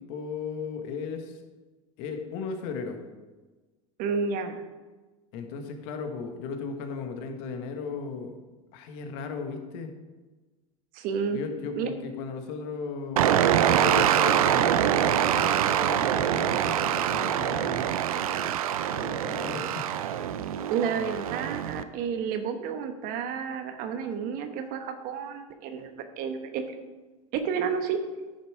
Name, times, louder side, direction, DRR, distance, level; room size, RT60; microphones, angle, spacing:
voice 1, 0.0-1.4 2.0-3.0 5.3-8.4 8.7-9.9 11.3-17.9 18.9-19.9, left 5 dB, 60° left, 6 dB, 1.5 m, -36 dB
voice 2, 4.0-4.6 10.9-11.4 11.8-11.9 20.7-26.6 27.3-28.0, right 6 dB, 55° right, 7 dB, 1.1 m, -31 dB
sound 1, 13.2-21.8, right 10 dB, 80° right, 0.5 m, -25 dB
10.5 x 6.5 x 4.9 m, 1.2 s
hypercardioid pair, 90°, 18 cm